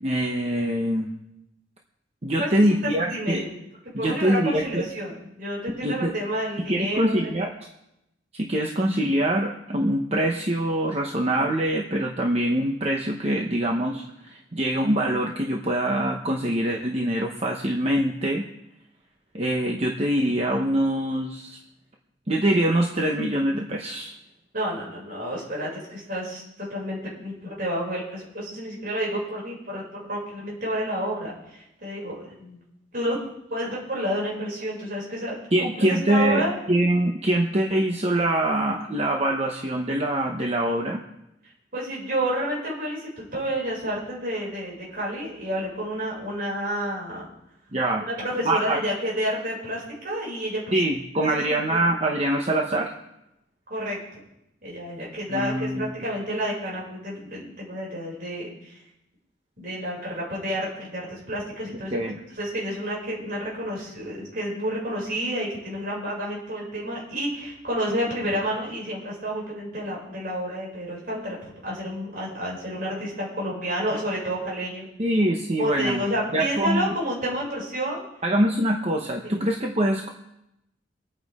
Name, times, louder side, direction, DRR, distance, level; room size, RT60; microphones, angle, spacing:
voice 1, 0.0-1.1 2.2-3.4 3.9-4.8 5.8-6.1 6.7-7.5 8.3-18.5 19.3-21.6 22.3-24.1 35.5-41.0 47.7-48.1 48.4-48.8 50.7-52.9 55.3-55.9 61.9-62.2 75.0-76.0 76.3-76.9 78.2-80.1, right 1 dB, 35° right, 1 dB, 1.1 m, -24 dB
voice 2, 2.8-3.5 4.0-7.2 24.5-32.6 32.9-33.2 33.5-35.4 35.8-36.5 41.7-47.2 48.0-50.6 51.2-51.8 53.7-54.2 54.6-58.8 59.6-61.9 62.4-74.9 75.6-78.0 79.2-79.4, equal, 50° right, -5 dB, 6.4 m, -30 dB
25.5 x 9.4 x 3.7 m, 0.86 s
head